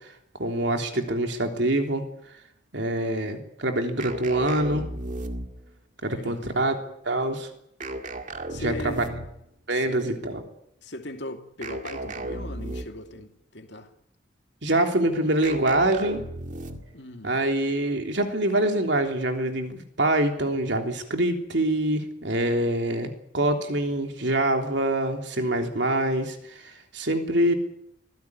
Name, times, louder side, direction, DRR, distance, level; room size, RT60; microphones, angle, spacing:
voice 1, 0.4-2.0 2.7-4.9 6.0-6.8 7.0-7.5 8.6-9.1 9.7-10.4 14.6-16.2 17.2-27.5, right 1 dB, 60° right, 3.4 m, -25 dB
sound 1, 4.0-5.8 7.8-9.5 11.6-13.1 15.4-17.0, right 1 dB, 40° right, 2.1 m, -35 dB
voice 2, 6.1-6.7 8.5-9.0 9.7-10.0 10.8-13.9 16.9-17.4, left 1 dB, 60° left, 2.7 m, -39 dB
24.5 x 16.0 x 9.8 m
head